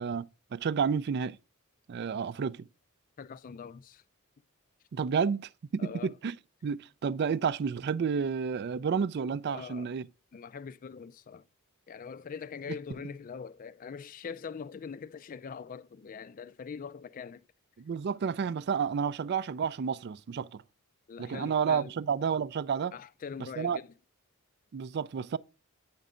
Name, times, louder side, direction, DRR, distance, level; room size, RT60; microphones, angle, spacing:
voice 1, 0.0-1.4 1.9-2.7 4.9-5.4 5.7-6.4 6.6-10.1 17.8-20.6 21.2-22.9 23.6-23.8 24.7-25.4, right 6 dB, 50° right, 0.3 m, -30 dB
voice 2, 3.2-4.0 5.8-6.2 9.5-10.0 10.3-11.5 11.9-17.4 21.1-22.0 22.9-23.9, left 6 dB, 40° left, 0.3 m, -43 dB
9.2 x 5.3 x 3.6 m
head